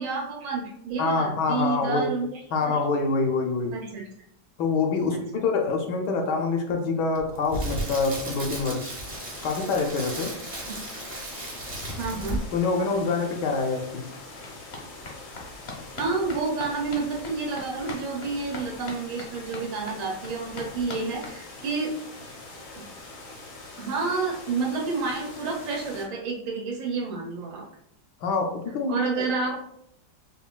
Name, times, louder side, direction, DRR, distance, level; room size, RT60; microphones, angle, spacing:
voice 1, 0.0-2.8 3.7-4.0 5.1-5.4 10.6-10.8 12.0-12.5 16.0-21.9 23.8-27.6 28.9-29.6, right 4 dB, 85° right, -1 dB, 1.7 m, -29 dB
voice 2, 1.0-2.1 2.5-3.8 4.6-8.9 9.4-10.3 12.5-14.0 28.2-29.3, left 4 dB, 75° left, 3 dB, 1.2 m, -26 dB
Crackle, 7.1-12.6 12.9-13.1, right 1 dB, 30° right, 0.8 m, -35 dB
sound 1, 9.0-26.1, left 2 dB, 90° left, 1.8 m, -44 dB
sound 2, 13.5-22.0 22.3-22.4 22.6-22.7 23.0-23.1, left 2 dB, 50° left, 0.8 m, -43 dB
5.4 x 2.3 x 2.3 m, 0.73 s
omnidirectional pair, 2.0 m